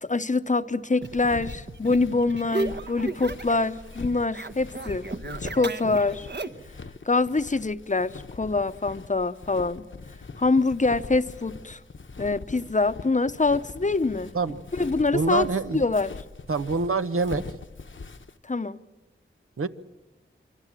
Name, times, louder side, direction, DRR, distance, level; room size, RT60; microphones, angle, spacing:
voice 1, 0.0-5.1 5.4-6.3 7.1-9.9 10.4-11.8 12.2-14.3 14.7-15.5 15.7-16.1 18.4-18.8, left 3 dB, 35° left, 0.8 m, -25 dB
Walk footsteps, 1.0-18.4, left 4 dB, 65° left, 1.0 m, -42 dB
sound 1, 1.0-3.7 3.9-6.7, right 3 dB, 55° right, 1.2 m, -35 dB
voice 2, 15.1-15.8 16.5-17.4 19.6-19.7, right 4 dB, 85° right, 1.0 m, -25 dB
27.0 x 23.0 x 7.5 m
wide cardioid pair, 50°, 21 cm